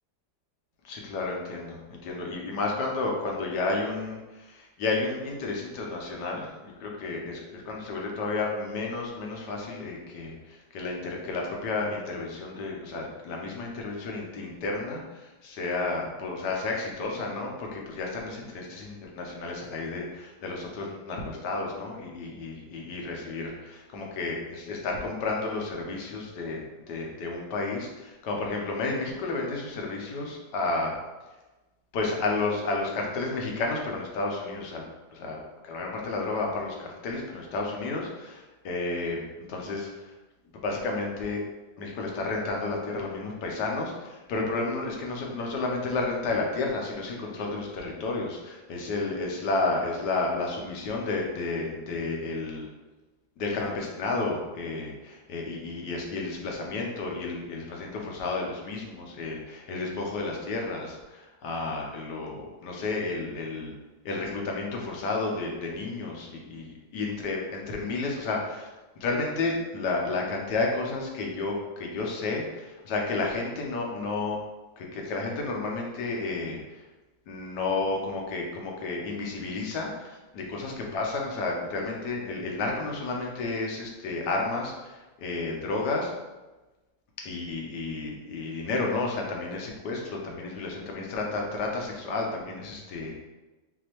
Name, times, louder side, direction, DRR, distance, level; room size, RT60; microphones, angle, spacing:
voice 1, 0.8-30.9 31.9-34.8 35.1-35.4 35.6-40.1 40.5-41.4 41.8-52.7 53.4-63.7 64.0-68.7 69.0-74.4 74.8-76.8 77.3-86.1 87.2-93.2, left 3 dB, 70° left, 0 dB, 1.4 m, -31 dB
6.1 x 2.8 x 2.9 m, 1.1 s
omnidirectional pair, 2.0 m